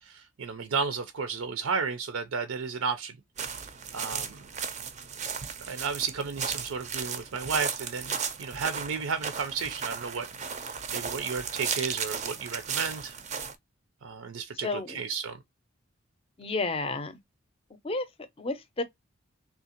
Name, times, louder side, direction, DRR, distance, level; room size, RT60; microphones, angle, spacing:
voice 1, 0.0-3.2 3.9-4.4 5.7-10.3 10.6-13.2 14.0-15.4, right 5 dB, 85° right, 0.5 m, -33 dB
sound 1, 3.4-13.5, right 6 dB, 35° right, 0.4 m, -35 dB
voice 2, 14.6-15.0 16.4-17.2 17.8-18.1 18.4-18.8, left 3 dB, 25° left, 0.5 m, -31 dB
3.6 x 2.8 x 2.8 m
head